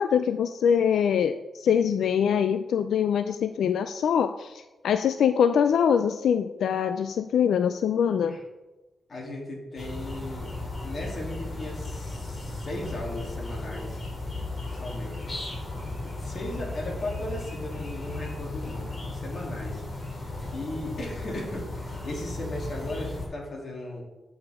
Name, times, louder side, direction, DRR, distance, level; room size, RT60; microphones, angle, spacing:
voice 1, 0.0-8.4, left 8 dB, 90° left, 10 dB, 0.3 m, -24 dB
voice 2, 9.1-10.5 10.8-14.0 14.7-15.2 16.0-24.0, left 1 dB, 55° left, -2 dB, 2.9 m, -37 dB
sound 1, 9.8-23.3, left 2 dB, 40° left, 3.1 m, -35 dB
11.5 x 7.0 x 3.6 m, 1.1 s
cardioid pair, 80°, 0 cm